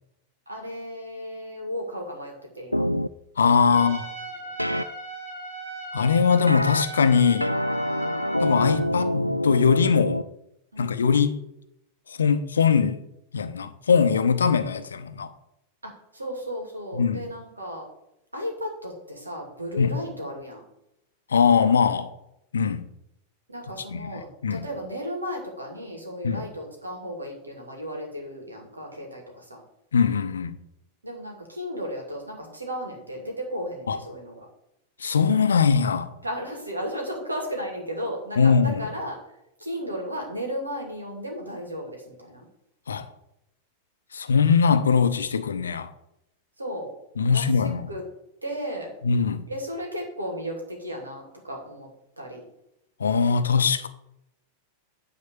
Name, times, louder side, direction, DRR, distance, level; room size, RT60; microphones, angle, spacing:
voice 1, 0.5-2.8 3.7-3.9 8.0-8.3 10.7-11.0 15.8-17.9 18.3-20.6 23.5-29.6 31.0-34.5 36.2-39.2 39.6-42.5 46.6-46.9 47.3-48.0 48.4-48.9 49.5-51.9 52.2-52.4, equal, 80° right, 2.7 m, -34 dB
sound 1, 2.7-3.1 4.6-4.8 6.5-6.8 7.4-10.2, equal, 90° left, 0.3 m, -26 dB
voice 2, 3.4-4.0 5.9-7.5 8.4-10.2 10.8-11.4 12.1-13.0 13.3-15.3 17.0-17.3 19.8-19.9 21.3-22.1 22.5-22.8 23.9-24.0 24.4-24.6 26.2-26.4 29.9-30.5 33.9-34.0 35.0-36.1 38.4-38.8 42.9-43.0 44.1-45.9 47.2-47.9 49.0-49.4 53.0-53.9, left 6 dB, 70° left, 0.7 m, -21 dB
Trumpet, 3.7-8.9, right 3 dB, 55° right, 3.0 m, -38 dB
9.5 x 4.2 x 7.0 m
figure-of-eight pair, 90°, 0 cm